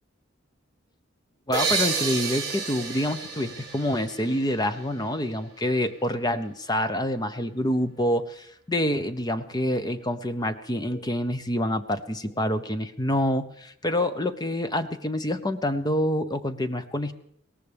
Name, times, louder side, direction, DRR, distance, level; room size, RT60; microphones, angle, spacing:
voice 1, 1.5-17.1, left 1 dB, 20° left, 10 dB, 0.7 m, -27 dB
sound 1, 1.5-5.1, right 5 dB, 20° right, 3.3 m, -30 dB
21.0 x 18.0 x 3.4 m, 0.68 s
head